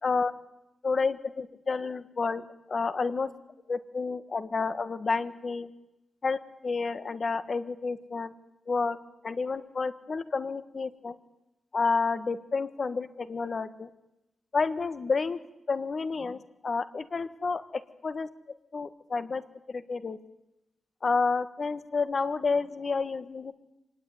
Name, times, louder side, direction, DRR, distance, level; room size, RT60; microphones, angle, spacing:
voice 1, 0.0-0.3 0.8-3.3 3.7-5.7 6.2-8.3 8.7-9.0 9.2-11.2 11.7-13.9 14.5-15.4 15.7-18.3 18.7-19.4 19.7-20.2 21.0-23.5, left 4 dB, 45° left, 12 dB, 1.5 m, -30 dB
25.5 x 19.5 x 9.5 m, 0.92 s
wide cardioid pair, 115°, 0 cm